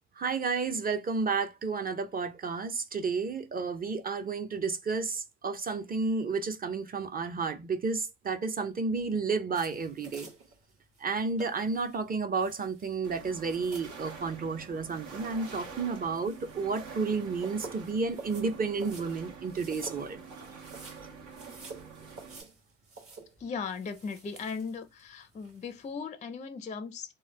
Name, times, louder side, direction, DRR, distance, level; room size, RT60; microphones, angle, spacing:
voice 1, 0.2-10.3 11.0-20.2, right 4 dB, 30° right, 0.6 m, -31 dB
sound 1, 9.5-25.9, right 4 dB, 50° right, 1.3 m, -51 dB
sound 2, 13.0-22.4, right 5 dB, 80° right, 1.2 m, -46 dB
voice 2, 23.4-27.2, left 5 dB, 25° left, 0.4 m, -38 dB
3.1 x 2.1 x 3.2 m
cardioid pair, 90°, 30 cm